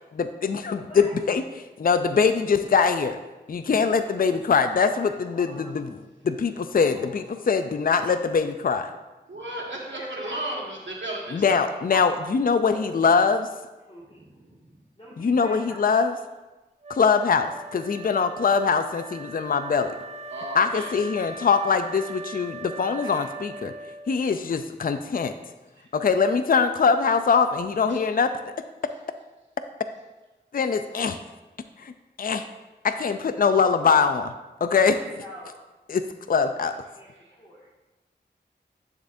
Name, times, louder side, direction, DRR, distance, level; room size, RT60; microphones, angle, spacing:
voice 1, 0.2-1.4 1.8-3.2 3.5-5.9 6.2-8.9 11.3-13.4 15.2-16.1 16.9-19.9 20.5-23.7 24.1-25.3 25.9-28.3 30.5-31.2 31.8-31.9 32.2-32.4 32.8-34.3 34.6-35.0 35.9-36.7, left 5 dB, 50° left, 10 dB, 0.4 m, -22 dB
voice 2, 4.1-4.4 5.0-5.7 6.5-7.4 9.8-10.5 11.4-12.1 12.7-13.2 13.8-14.4 15.0-16.0 33.9-34.2 35.2-35.6 36.6-36.7 36.9-37.7, equal, 30° left, -9 dB, 1.9 m, -44 dB
voice 3, 9.3-11.7 14.2-14.5 20.3-21.0 23.0-23.3 25.8-25.9 27.9-28.0 37.2-37.3, right 1 dB, 80° right, -3 dB, 1.8 m, -35 dB
Wind instrument woodwind instrument, 16.8-24.4, right 2 dB, 35° right, 0.5 m, -40 dB
9.7 x 6.8 x 2.6 m, 1.1 s
wide cardioid pair, 45°, 19 cm